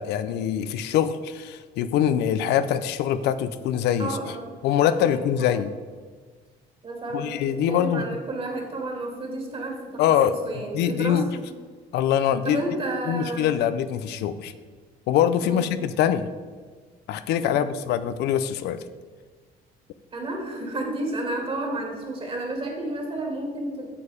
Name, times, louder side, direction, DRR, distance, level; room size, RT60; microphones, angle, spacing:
voice 1, 0.0-4.2 4.6-5.7 7.1-8.0 10.0-11.3 11.9-12.6 13.1-14.5 15.1-16.3 17.1-18.8, left 10 dB, 80° left, 12 dB, 0.6 m, -24 dB
voice 2, 4.0-4.5 4.8-5.6 6.8-7.3 7.7-10.0 10.3-11.2 12.4-13.5 15.4-15.7 17.4-17.6 20.1-23.9, right 2 dB, 35° right, 1 dB, 2.6 m, -31 dB
8.7 x 7.0 x 5.0 m, 1.5 s
cardioid pair, 110°, 17 cm